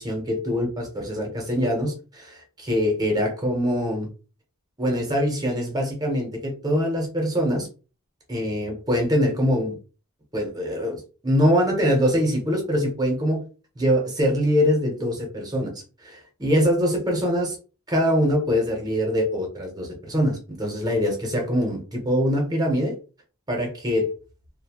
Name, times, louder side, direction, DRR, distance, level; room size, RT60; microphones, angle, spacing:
voice 1, 0.0-4.1 4.8-7.7 8.3-9.7 10.3-13.4 13.8-15.7 16.0-17.6 17.9-23.0 23.5-24.1, equal, 20° right, 1 dB, 0.7 m, -23 dB
2.6 x 2.1 x 2.9 m, 0.35 s
head